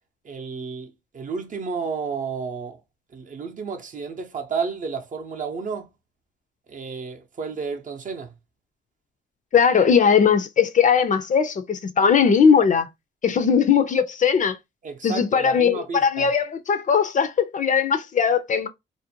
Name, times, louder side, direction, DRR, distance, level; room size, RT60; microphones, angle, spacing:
voice 1, 0.2-2.8 3.1-5.9 6.7-8.3 14.8-16.3, right 5 dB, 40° right, 0.6 m, -31 dB
voice 2, 9.5-12.9 13.2-14.6 15.0-18.7, left 6 dB, 40° left, 0.4 m, -19 dB
2.5 x 2.1 x 2.7 m
cardioid pair, 90°, 20 cm